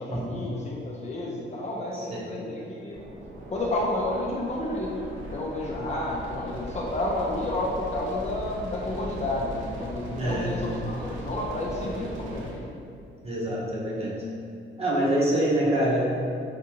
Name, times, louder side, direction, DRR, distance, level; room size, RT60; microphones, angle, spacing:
voice 1, 0.0-3.0 3.5-12.6, left 1 dB, 35° left, -4 dB, 0.5 m, -31 dB
sound 1, 2.9-12.5, equal, 75° right, 0.7 m, -39 dB
voice 2, 10.2-10.6 13.2-14.1 14.8-16.0, right 1 dB, 30° right, -6 dB, 0.9 m, -25 dB
3.4 x 2.6 x 2.8 m, 2.5 s
cardioid pair, 90°, 20 cm